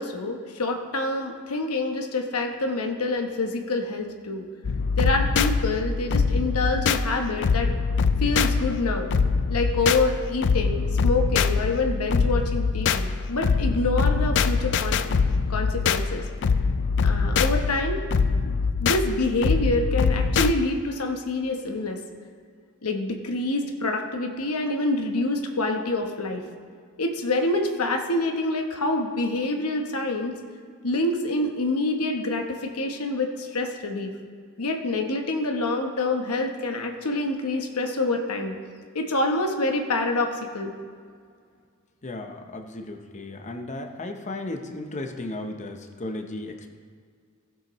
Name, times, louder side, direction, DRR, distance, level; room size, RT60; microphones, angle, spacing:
voice 1, 0.0-4.5 5.0-7.7 8.2-9.1 9.5-15.0 15.5-16.2 17.0-18.0 18.4-22.0 22.8-26.4 27.0-30.3 30.8-34.1 34.6-38.5 38.9-40.7, left 2 dB, 85° left, 4 dB, 1.0 m, -26 dB
sound 1, 4.6-20.5, left 5 dB, 55° left, 0.4 m, -23 dB
voice 2, 42.0-46.8, left 2 dB, 35° left, 5 dB, 0.8 m, -35 dB
16.0 x 7.4 x 3.1 m, 2.1 s
head